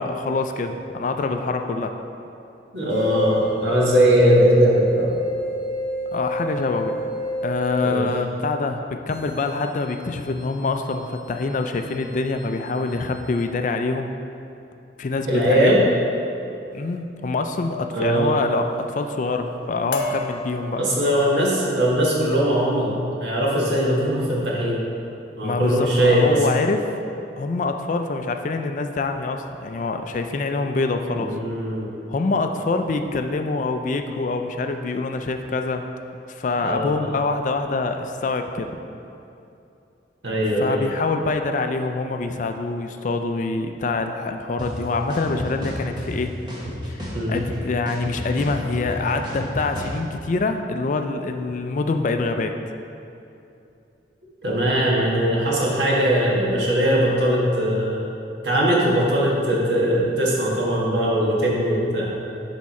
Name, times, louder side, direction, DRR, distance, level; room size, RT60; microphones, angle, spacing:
voice 1, 0.0-1.9 6.1-6.9 7.4-14.1 15.0-15.9 16.7-20.8 25.4-26.8 27.4-31.3 32.1-35.8 36.3-38.7 40.6-46.3 46.8-52.5, left 3 dB, 45° left, 6 dB, 0.4 m, -25 dB
voice 2, 2.7-5.1 7.8-8.1 15.3-15.8 17.9-18.3 20.8-24.8 25.4-26.4 31.1-31.9 36.6-37.1 40.2-40.8 47.1-47.4 54.4-58.0 58.4-62.2, equal, 75° right, -4 dB, 1.6 m, -20 dB
sound 1, 2.9-8.0 9.1-13.4, left 1 dB, 15° left, 1.2 m, -30 dB
sound 2, 16.7-17.0 17.7-18.1 18.4-18.9 19.3-19.6 19.9-21.3 21.9-22.1 22.5-22.8, left 3 dB, 70° left, 0.8 m, -33 dB
sound 3, 44.6-44.7 45.1-46.1 46.5-47.6 47.9-49.9, equal, 25° right, 1.3 m, -32 dB
10.5 x 3.6 x 4.2 m, 2.7 s
head